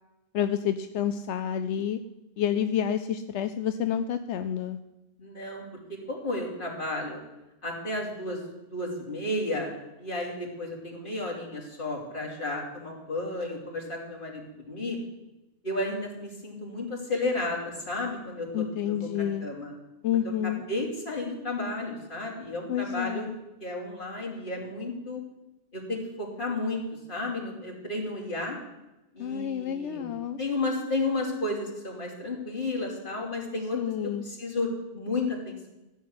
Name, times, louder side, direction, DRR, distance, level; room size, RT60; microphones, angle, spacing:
voice 1, 0.3-2.0 2.4-4.8 18.5-19.5 20.0-20.6 22.7-23.4 29.2-30.4 33.7-34.2, left 9 dB, 85° left, 9 dB, 0.9 m, -29 dB
voice 2, 5.2-5.8 6.1-7.2 7.6-8.4 8.7-9.7 10.0-15.0 15.6-19.7 20.2-23.3 23.6-25.2 25.7-26.8 27.1-28.6 29.1-33.8 34.0-35.7, left 2 dB, 50° left, -2 dB, 3.3 m, -32 dB
15.0 x 6.5 x 9.5 m, 1.0 s
omnidirectional pair, 1.2 m